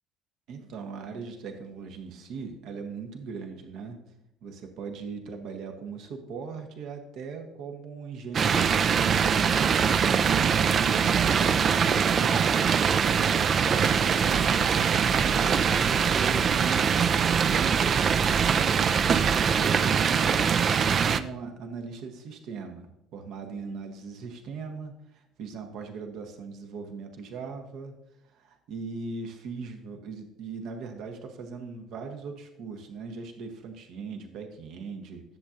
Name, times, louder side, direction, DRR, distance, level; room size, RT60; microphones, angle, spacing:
voice 1, 0.5-4.0 4.4-9.8 10.3-12.5 13.3-19.0 19.5-28.0 28.2-35.2, right 5 dB, 60° right, 5 dB, 1.0 m, -39 dB
sound 1, 8.3-21.2, right 7 dB, 45° right, 0.4 m, -23 dB
10.5 x 7.2 x 2.5 m, 0.83 s
hypercardioid pair, 55°, 0 cm